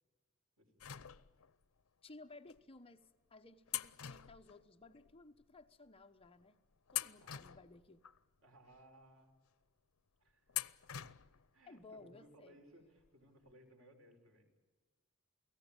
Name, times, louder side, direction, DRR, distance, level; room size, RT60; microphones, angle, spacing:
voice 1, 0.6-1.1 7.2-7.6 8.4-9.3 10.2-10.6 11.5-14.5, equal, 85° right, 4 dB, 5.1 m, -63 dB
sound 1, 0.8-1.6 2.5-2.6 3.7-5.1 5.4-5.5 6.2-6.5 6.9-8.2 8.7-8.8 10.5-11.5 11.8-11.9 13.0-13.1 13.4-13.5, left 13 dB, 80° left, 0.7 m, -44 dB
voice 2, 2.0-6.6 6.9-8.0 11.7-12.6, left 2 dB, 25° left, 7 dB, 1.0 m, -58 dB
29.0 x 18.0 x 8.9 m, 1.4 s
head